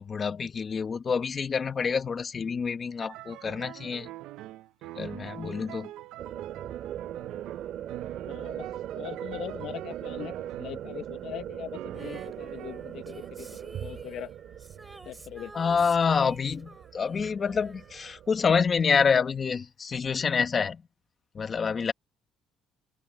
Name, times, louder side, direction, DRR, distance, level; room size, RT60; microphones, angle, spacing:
voice 1, 0.0-4.1 4.9-5.9 15.5-20.8 21.3-21.9, left 6 dB, 30° left, 1.6 m, -27 dB
sound 1, 3.0-10.9 11.7-12.8, right 15 dB, 85° right, 0.7 m, -44 dB
sound 2, 6.2-18.9, right 11 dB, 60° right, 3.1 m, -40 dB
voice 2, 8.2-13.5 13.8-14.3 15.0-15.5, left 12 dB, 65° left, 1.1 m, -41 dB
Female singing, 11.9-18.9 20.1-20.2, right 2 dB, 15° right, 3.4 m, -50 dB
cardioid pair, 130°, 0 cm